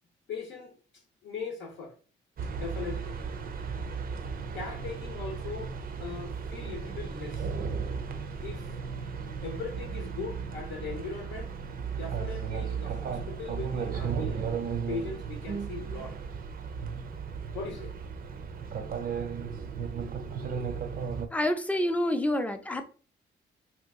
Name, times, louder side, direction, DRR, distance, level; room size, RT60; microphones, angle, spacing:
voice 1, 0.3-0.7 1.2-1.9 2.5-3.2 4.5-7.5 8.4-8.7 9.4-11.5 12.0-14.4 14.9-16.2 17.5-18.0, left 5 dB, 70° left, 0.7 m, -39 dB
sound 1, 2.4-21.3, right 6 dB, 50° right, 0.5 m, -35 dB
voice 2, 21.3-22.8, left 1 dB, 5° left, 0.5 m, -28 dB
2.8 x 2.3 x 3.5 m
cardioid pair, 90°, 20 cm